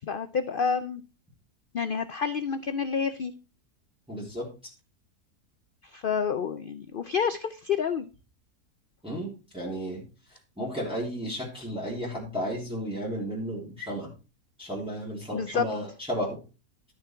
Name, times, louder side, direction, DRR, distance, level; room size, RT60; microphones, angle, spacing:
voice 1, 0.1-1.0 1.7-3.3 5.8-8.1 15.3-15.7, left 6 dB, 85° left, 11 dB, 0.4 m, -29 dB
voice 2, 4.1-4.5 9.0-10.0 10.3-14.1 14.6-16.4, equal, 5° right, -5 dB, 3.2 m, -33 dB
11.5 x 6.8 x 4.4 m, 0.33 s
omnidirectional pair, 1.7 m